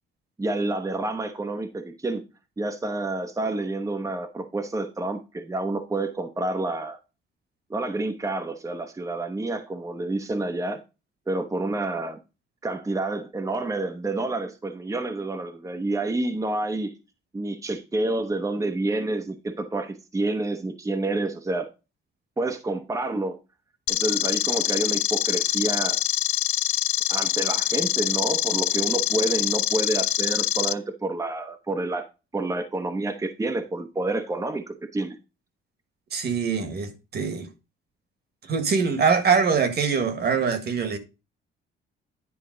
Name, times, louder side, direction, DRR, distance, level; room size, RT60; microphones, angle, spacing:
voice 1, 0.4-2.2 2.6-7.0 7.7-10.8 11.3-12.2 12.6-16.9 17.3-21.7 22.4-23.4 23.9-26.0 27.1-32.1 32.3-35.2, right 2 dB, 15° right, 0.9 m, -28 dB
sound 1, 23.9-30.7, left 16 dB, 85° left, 0.4 m, -25 dB
voice 2, 36.1-37.5 38.5-41.0, right 5 dB, 50° right, 1.6 m, -23 dB
10.0 x 4.4 x 3.9 m
cardioid pair, 115°, 21 cm